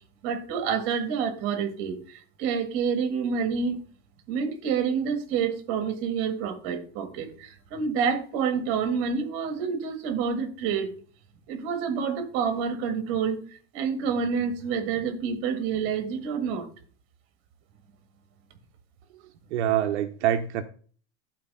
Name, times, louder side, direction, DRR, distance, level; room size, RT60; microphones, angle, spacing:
voice 1, 0.2-2.0 2.4-3.8 4.3-10.9 11.5-13.4 13.7-16.7, right 6 dB, 40° right, 2.0 m, -28 dB
voice 2, 19.5-20.6, right 11 dB, 75° right, 0.9 m, -25 dB
11.0 x 4.6 x 5.5 m
supercardioid pair, 160°, 34 cm